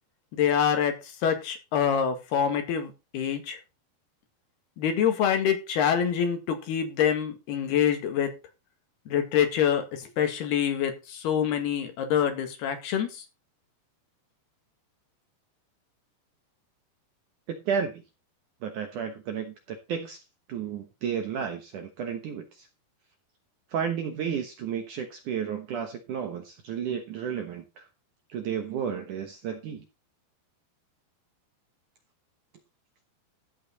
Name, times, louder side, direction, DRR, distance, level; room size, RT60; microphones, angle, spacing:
voice 1, 0.3-3.6 4.8-8.4 9.1-13.2, left 8 dB, 70° left, 3.8 m, -26 dB
voice 2, 17.5-18.0 18.6-20.2 20.5-22.7 23.7-27.9 28.3-29.8, right 7 dB, 65° right, 2.1 m, -32 dB
13.5 x 8.2 x 4.1 m
omnidirectional pair, 5.0 m